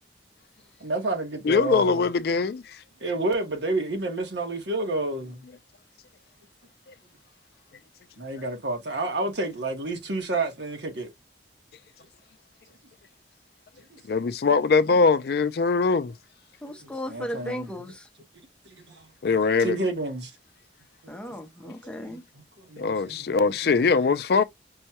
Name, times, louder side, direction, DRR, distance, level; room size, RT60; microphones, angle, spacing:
voice 1, 0.8-2.5 3.0-5.4 8.2-11.1 13.9-14.2 16.8-17.7 18.6-20.3 21.6-21.7 22.1-23.9, right 2 dB, 75° right, 1.2 m, -31 dB
voice 2, 1.5-2.8 14.1-16.1 19.2-19.8 22.8-24.4, left 4 dB, 60° left, 0.4 m, -22 dB
voice 3, 16.6-18.1 21.1-22.2, equal, 5° left, 0.7 m, -36 dB
5.4 x 2.2 x 2.8 m
head